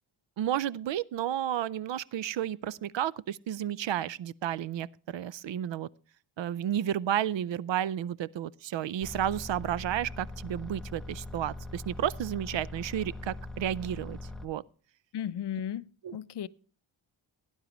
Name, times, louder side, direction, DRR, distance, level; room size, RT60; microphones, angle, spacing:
voice 1, 0.4-5.9 6.4-14.6 16.0-16.2, right 11 dB, 60° right, 0.6 m, -32 dB
sound 1, 9.0-14.5, left 2 dB, ahead, 1.0 m, -41 dB
voice 2, 15.1-16.5, left 10 dB, 55° left, 0.6 m, -35 dB
17.5 x 9.8 x 3.0 m
wide cardioid pair, 110°, 50 cm